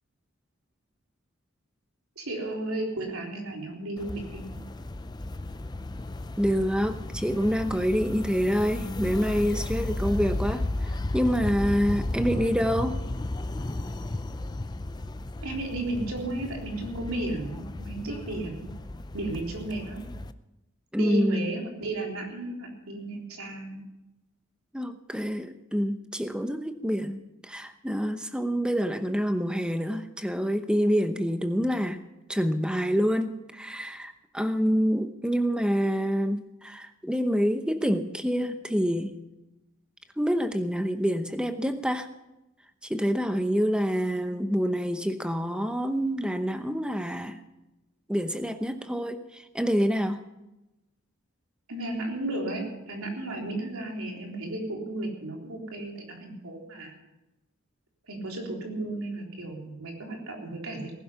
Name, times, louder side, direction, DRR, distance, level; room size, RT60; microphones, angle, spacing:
voice 1, 2.2-4.4 15.4-18.7 19.1-20.0 21.0-23.8 51.7-56.9 58.1-60.9, right 2 dB, 80° right, 0 dB, 3.8 m, -34 dB
sound 1, 4.0-20.3, left 2 dB, 20° left, 0.4 m, -34 dB
voice 2, 6.4-13.0 20.9-21.6 24.7-32.0 32.3-39.2 40.2-42.1 42.8-47.4 48.1-50.2, equal, 5° right, 8 dB, 0.8 m, -27 dB
19.0 x 11.5 x 5.7 m, 0.97 s
head